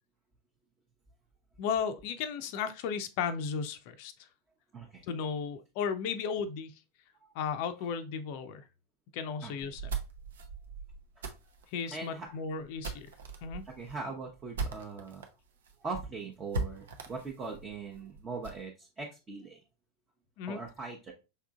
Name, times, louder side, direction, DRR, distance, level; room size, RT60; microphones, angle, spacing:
voice 1, 1.6-4.3 5.1-6.8 7.3-8.7 9.1-9.8 11.7-13.1 13.4-13.7 20.4-20.6, left 6 dB, 45° left, 0.4 m, -35 dB
voice 2, 4.7-5.1 7.2-7.3 9.4-9.7 11.9-12.4 13.6-15.3 15.8-19.6 20.4-21.1, right 4 dB, 20° right, 0.8 m, -41 dB
sound 1, 9.6-15.3 15.6-15.7 16.0-16.1 16.5-18.6, right 3 dB, 60° right, 0.7 m, -39 dB
5.5 x 3.6 x 2.4 m
figure-of-eight pair, 90°, 0 cm